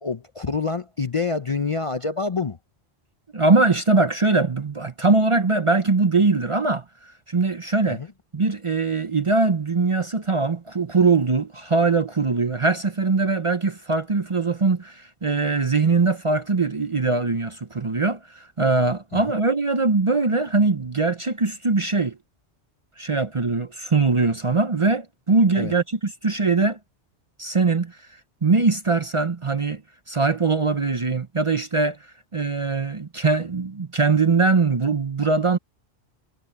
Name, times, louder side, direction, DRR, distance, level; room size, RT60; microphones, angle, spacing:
voice 1, 0.0-2.6 7.9-8.1 19.1-19.2 25.6-25.7, left 4 dB, 35° left, 0.6 m, -27 dB
voice 2, 3.3-6.8 7.3-8.0 8.3-22.1 23.0-26.8 27.4-27.9 28.4-29.8 30.1-32.0 32.3-35.6, right 3 dB, 30° right, 0.7 m, -21 dB
omnidirectional pair, 1.2 m